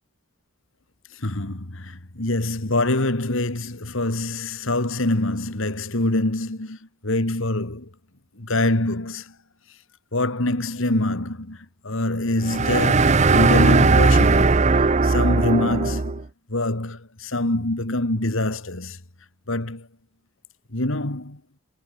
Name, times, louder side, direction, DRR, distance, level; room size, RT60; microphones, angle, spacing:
voice 1, 1.2-6.8 7.0-7.9 8.4-9.3 10.1-14.7 15.0-19.0 19.5-19.9 20.7-21.4, left 2 dB, 65° left, 2.3 m, -25 dB
sound 1, 12.4-16.2, right 3 dB, 30° right, 0.6 m, -18 dB
head